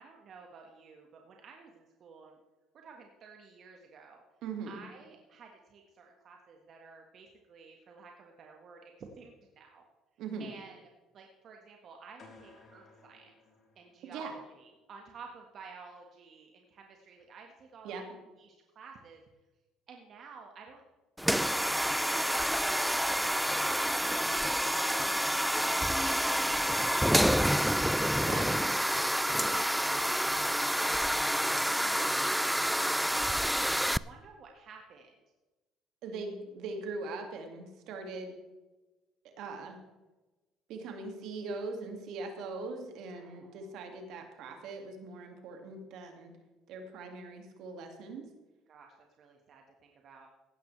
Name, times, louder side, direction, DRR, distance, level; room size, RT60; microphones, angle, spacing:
voice 1, 0.0-2.4 2.7-4.2 4.7-9.8 10.4-10.8 11.1-13.3 13.7-18.1 18.4-19.2 19.9-20.8 21.4-22.2 22.7-26.7 27.0-35.1 43.1-43.7 48.7-50.3, right 5 dB, 55° right, 2 dB, 1.6 m, -53 dB
voice 2, 4.4-4.8 10.2-10.5 14.0-14.3 17.8-18.0 28.2-28.5 36.0-38.4 39.4-39.8 40.7-46.3 46.7-48.3, right 3 dB, 70° right, 4 dB, 2.2 m, -41 dB
sound 1, 12.2-14.3, left 3 dB, 45° left, 3.7 m, -57 dB
sound 2, 21.2-34.0, equal, ahead, 0.3 m, -28 dB
16.0 x 11.0 x 3.4 m, 1.1 s
hypercardioid pair, 70°, 0 cm